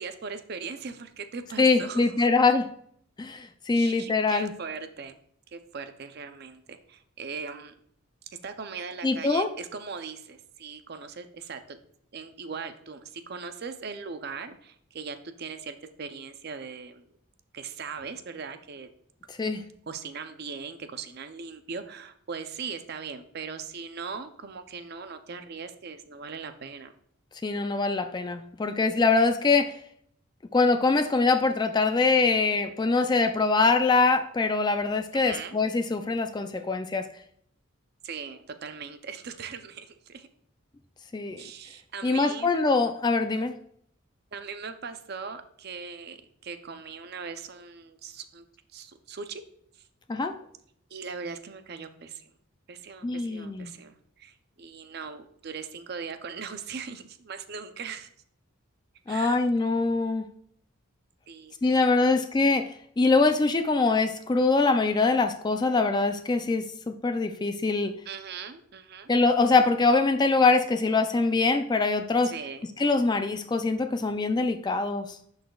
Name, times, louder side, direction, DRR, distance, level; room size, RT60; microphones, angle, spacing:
voice 1, 0.0-2.3 3.7-5.2 5.5-7.7 8.4-11.8 12.1-17.0 17.5-18.9 19.9-26.9 35.1-35.6 38.0-40.3 41.4-42.5 44.3-48.4 48.7-49.4 50.9-52.3 52.7-58.1 59.1-59.4 61.3-61.8 68.1-69.1 72.2-72.7, right 5 dB, 50° right, 9 dB, 0.5 m, -39 dB
voice 2, 1.6-2.7 3.2-4.5 9.0-9.5 19.3-19.6 27.4-29.7 30.5-37.0 41.1-41.4 42.0-43.5 50.1-50.3 53.0-53.7 59.1-60.3 61.6-62.7 63.0-67.9 69.1-72.3 72.8-75.2, left 3 dB, 20° left, 8 dB, 0.3 m, -23 dB
11.0 x 4.0 x 2.3 m, 0.66 s
head